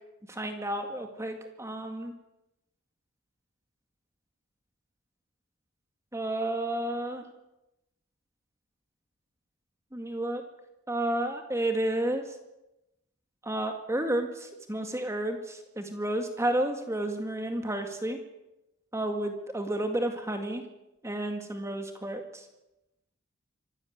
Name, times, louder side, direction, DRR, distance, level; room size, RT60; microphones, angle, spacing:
voice 1, 0.3-2.1 6.1-7.2 9.9-10.4 10.9-12.2 13.4-18.2 18.9-20.6 21.0-22.5, right 1 dB, 15° right, 5 dB, 2.0 m, -31 dB
26.0 x 14.0 x 9.4 m, 0.93 s
head